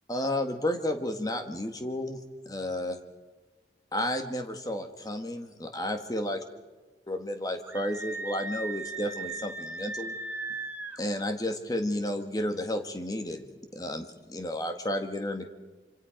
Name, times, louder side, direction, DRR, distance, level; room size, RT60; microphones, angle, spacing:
voice 1, 0.1-2.2 2.4-3.0 3.9-6.4 7.1-10.1 11.0-13.5 13.7-15.5, left 1 dB, 20° left, 6 dB, 1.6 m, -32 dB
Screaming, 7.7-11.0, right 3 dB, 10° right, 1.3 m, -37 dB
26.5 x 25.5 x 5.1 m, 1.3 s
head